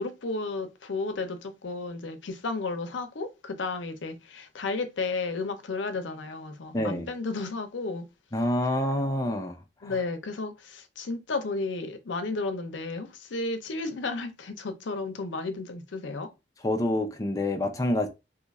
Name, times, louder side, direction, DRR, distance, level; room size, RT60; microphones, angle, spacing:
voice 1, 0.0-8.0 9.8-16.3, left 3 dB, 80° left, 0.6 m, -33 dB
voice 2, 6.7-7.1 8.3-9.6 9.8-10.0 16.6-18.1, left 1 dB, 20° left, 0.4 m, -27 dB
2.7 x 2.4 x 4.0 m
head